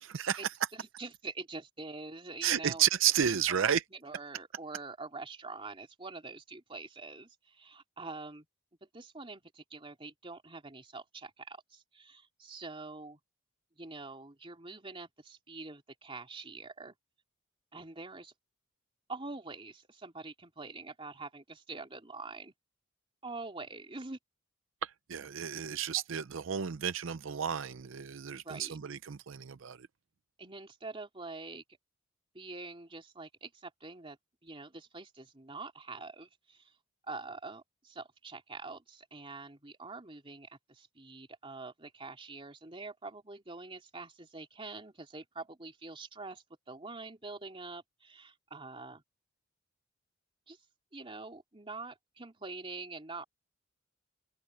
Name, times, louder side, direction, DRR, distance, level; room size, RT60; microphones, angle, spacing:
voice 1, 0.0-0.4 2.4-3.8 24.8-29.9, right 9 dB, 70° right, 0.5 m, -32 dB
voice 2, 0.7-2.9 3.3-8.5 8.8-13.2 13.8-16.9 17.7-18.3 19.1-22.5 23.2-24.2 28.3-28.8 30.4-31.6 32.3-34.2 34.4-36.7 37.1-49.0 50.5-50.6 50.9-53.3, right 3 dB, 25° right, 3.1 m, -45 dB
head